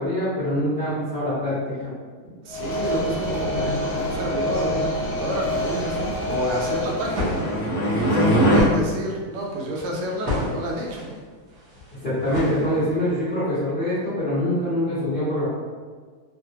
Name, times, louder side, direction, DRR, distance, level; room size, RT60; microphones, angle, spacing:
voice 1, 0.0-1.9 12.0-15.5, left 1 dB, 75° left, -13 dB, 0.4 m, -24 dB
voice 2, 2.4-7.5 8.1-11.2, equal, 80° right, -1 dB, 1.5 m, -29 dB
sound 1, 2.5-7.7, left 1 dB, 40° left, 1.3 m, -27 dB
sound 2, 6.7-8.6, equal, 60° left, 0.8 m, -21 dB
sound 3, 7.0-13.1, left 1 dB, 60° right, 1.0 m, -33 dB
3.5 x 2.1 x 2.7 m, 1.5 s
omnidirectional pair, 2.4 m